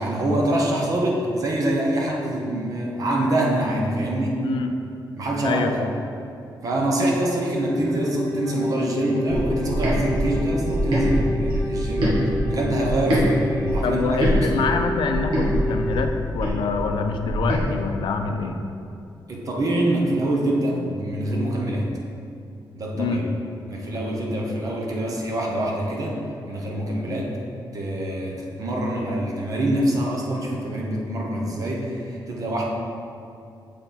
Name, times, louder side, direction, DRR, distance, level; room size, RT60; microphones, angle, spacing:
voice 1, 0.0-4.4 5.2-5.8 6.6-12.2 12.5-14.6 19.3-21.9 22.8-23.2 23.7-26.2 26.5-27.3 27.7-32.7, right 1 dB, 45° right, -2 dB, 0.9 m, -25 dB
voice 2, 4.4-4.8 5.4-5.9 13.8-18.6 22.9-23.3 27.1-27.3, left 4 dB, 80° left, 5 dB, 0.5 m, -26 dB
Wind instrument woodwind instrument, 7.6-16.3, equal, 15° left, 0.7 m, -30 dB
sound 1, 9.3-13.3 13.6-17.6, equal, 80° right, 1.5 m, -24 dB
6.8 x 4.4 x 3.9 m, 2.5 s
wide cardioid pair, 155°, 8 cm